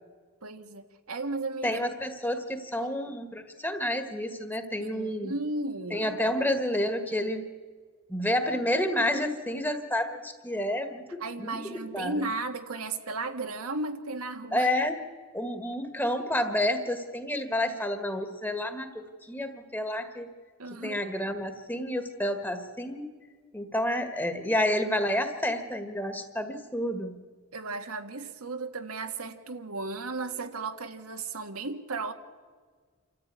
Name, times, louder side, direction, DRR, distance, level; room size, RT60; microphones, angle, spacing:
voice 1, 0.4-1.9 2.8-2.9 4.8-6.3 11.2-14.7 20.6-21.0 27.5-32.1, right 3 dB, 90° right, 6 dB, 1.8 m, -35 dB
voice 2, 1.6-5.3 5.9-7.4 8.1-12.2 14.5-15.0 15.3-20.3 20.8-23.1 23.5-27.2, left 1 dB, 10° left, 7 dB, 1.6 m, -30 dB
28.0 x 14.0 x 9.5 m, 1.5 s
head